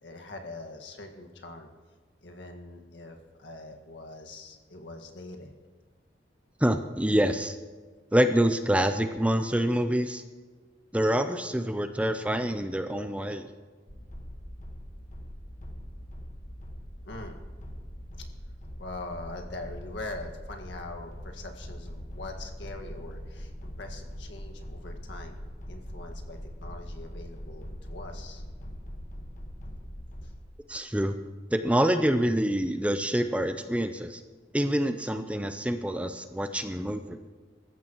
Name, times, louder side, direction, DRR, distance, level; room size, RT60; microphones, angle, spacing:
voice 1, 0.0-1.7 2.2-5.5 17.0-17.4 18.8-25.4 25.7-28.4 30.2-30.3, left 2 dB, 75° left, 3 dB, 1.8 m, -42 dB
voice 2, 6.6-7.6 8.1-10.2 10.9-13.4 30.7-31.2 31.5-34.2 34.5-37.2, right 1 dB, 5° right, 8 dB, 0.5 m, -26 dB
sound 1, 13.9-30.4, equal, 40° left, 1.5 m, -42 dB
24.0 x 14.5 x 3.1 m, 1.4 s
head